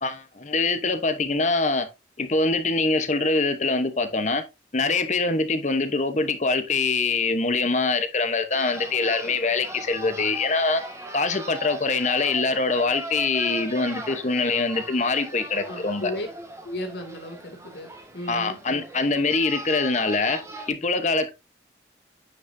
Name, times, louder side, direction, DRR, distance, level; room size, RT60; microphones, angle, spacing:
voice 1, 0.0-1.9 2.2-4.4 4.7-10.8 11.1-16.1 18.3-20.4 20.7-21.3, left 3 dB, 40° left, 0.9 m, -24 dB
sound 1, 8.5-20.7, right 1 dB, 15° right, 1.7 m, -39 dB
voice 2, 15.7-16.3 16.6-18.6, left 1 dB, 65° left, 2.4 m, -35 dB
9.6 x 6.2 x 2.6 m
head